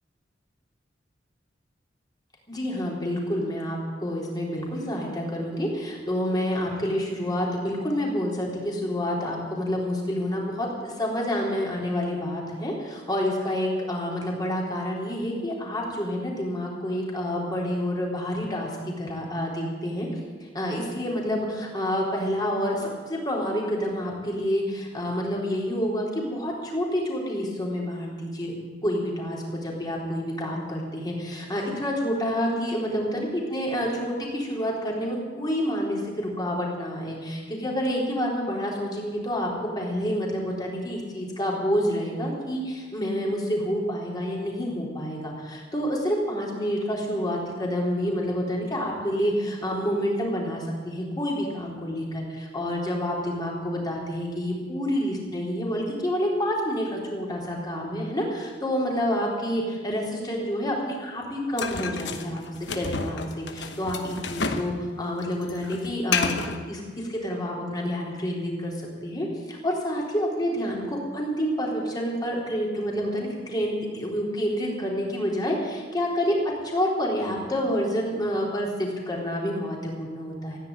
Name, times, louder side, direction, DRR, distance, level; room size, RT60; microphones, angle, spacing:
voice 1, 2.5-20.1 20.4-28.6 28.8-62.4 62.7-76.4 76.6-80.6, equal, 20° left, -2 dB, 3.7 m, -28 dB
sound 1, 61.6-64.7 65.0-66.6, left 4 dB, 65° left, 1.2 m, -30 dB
16.0 x 9.9 x 8.9 m, 1.5 s
head